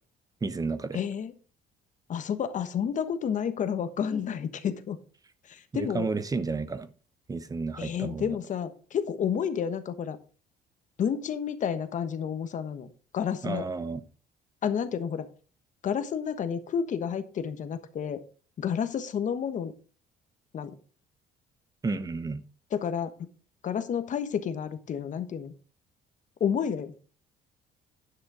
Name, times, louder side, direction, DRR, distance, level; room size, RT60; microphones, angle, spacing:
voice 1, 0.4-1.0 5.7-6.9 7.3-8.4 13.4-14.0 21.8-22.4, right 4 dB, 20° right, 13 dB, 0.9 m, -31 dB
voice 2, 0.9-1.3 2.1-5.0 5.5-6.1 7.8-10.2 11.0-13.7 14.6-15.3 15.8-18.2 18.6-19.7 20.5-20.7 22.7-23.1 23.6-25.5 26.4-26.9, left 8 dB, 50° left, 10 dB, 1.2 m, -30 dB
10.0 x 6.4 x 5.0 m, 0.40 s
cardioid pair, 110°, 17 cm